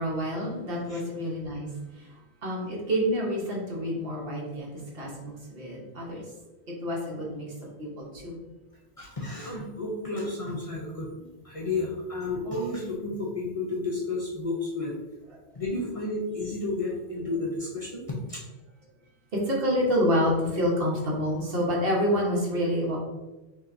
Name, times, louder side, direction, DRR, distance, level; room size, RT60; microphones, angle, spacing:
voice 1, 0.0-1.7 2.4-6.2 6.8-8.4 19.3-23.0, equal, 65° right, -3 dB, 1.2 m, -28 dB
voice 2, 9.0-14.9 15.5-18.4, left 2 dB, 40° left, -3 dB, 0.6 m, -32 dB
5.5 x 2.8 x 2.6 m, 1.1 s
omnidirectional pair, 1.1 m